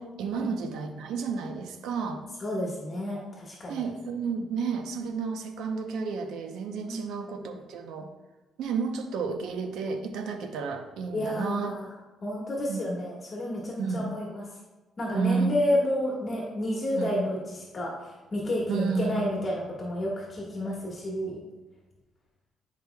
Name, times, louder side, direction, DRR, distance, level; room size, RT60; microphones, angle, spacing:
voice 1, 0.0-2.2 3.7-8.1 8.6-11.8 12.7-12.8 13.8-14.1 15.1-15.5 17.0-17.1 18.7-19.3, right 5 dB, 85° right, 5 dB, 0.7 m, -31 dB
voice 2, 2.4-3.8 6.8-7.0 11.1-11.9 12.2-14.5 15.0-21.4, left 1 dB, 35° left, -3 dB, 1.6 m, -30 dB
10.5 x 5.0 x 2.3 m, 1.1 s
cardioid pair, 90°, 0 cm